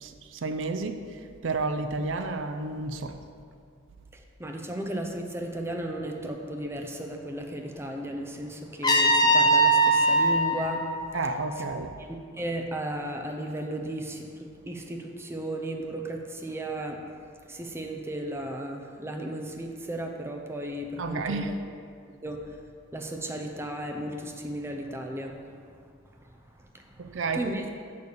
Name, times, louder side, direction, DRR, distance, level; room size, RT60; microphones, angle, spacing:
voice 1, 0.0-1.0 1.4-3.2 11.1-12.0 21.0-21.5 27.0-27.7, right 3 dB, 65° right, 8 dB, 0.5 m, -31 dB
voice 2, 4.1-11.1 12.0-12.1 12.4-17.2 17.5-21.5 22.2-22.6 22.9-25.4 26.7-27.6, right 1 dB, 10° right, 2 dB, 0.7 m, -35 dB
Trumpet, 8.8-11.8, right 1 dB, 20° left, 0.9 m, -22 dB
6.9 x 6.7 x 6.8 m, 2.3 s
head